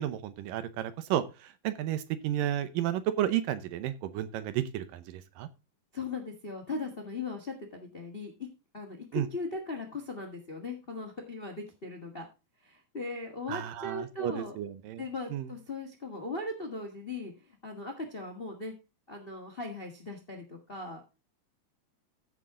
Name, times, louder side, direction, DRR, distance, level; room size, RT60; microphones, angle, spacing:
voice 1, 0.0-5.5 9.1-9.3 13.5-15.0 15.3-15.5, right 12 dB, 75° right, 12 dB, 2.4 m, -32 dB
voice 2, 5.9-8.5 8.7-12.3 12.6-14.6 15.0-18.7 19.1-21.0, left 3 dB, 40° left, 4 dB, 0.8 m, -39 dB
14.5 x 6.3 x 3.7 m, 0.28 s
omnidirectional pair, 4.2 m